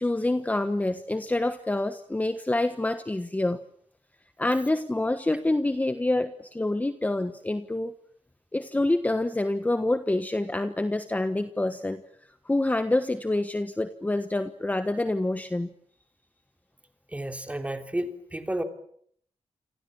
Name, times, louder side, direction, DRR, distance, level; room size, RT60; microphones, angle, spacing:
voice 1, 0.0-3.6 4.4-7.9 8.5-12.0 12.4-15.7, left 2 dB, 15° left, 9 dB, 1.3 m, -27 dB
voice 2, 17.1-18.6, right 1 dB, 10° right, 6 dB, 3.4 m, -31 dB
29.0 x 26.5 x 7.2 m, 0.65 s
wide cardioid pair, 125°, 11 cm